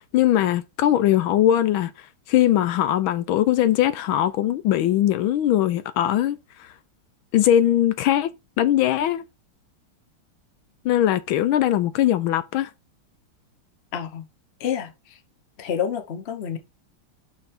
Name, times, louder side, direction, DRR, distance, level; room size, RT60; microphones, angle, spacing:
voice 1, 0.1-1.9 2.3-6.7 7.3-8.3 8.6-9.2 10.8-12.7, left 12 dB, 80° left, 1.4 m, -20 dB
voice 2, 13.9-14.3 14.6-15.2 15.6-16.6, left 8 dB, 40° left, 1.0 m, -28 dB
5.8 x 5.6 x 4.4 m
omnidirectional pair, 2.3 m